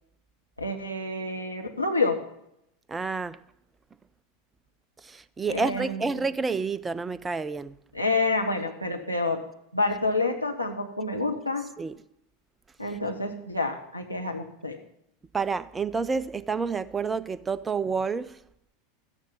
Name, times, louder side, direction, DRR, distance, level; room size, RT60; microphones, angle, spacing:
voice 1, 0.6-2.2 5.5-6.1 7.9-9.4 9.7-11.7 12.8-14.8, left 3 dB, 90° left, 1.1 m, -28 dB
voice 2, 2.9-3.4 5.0-7.7 11.8-12.0 15.3-18.4, right 4 dB, 15° right, 0.5 m, -29 dB
13.5 x 9.9 x 5.5 m
figure-of-eight pair, 85°, 0 cm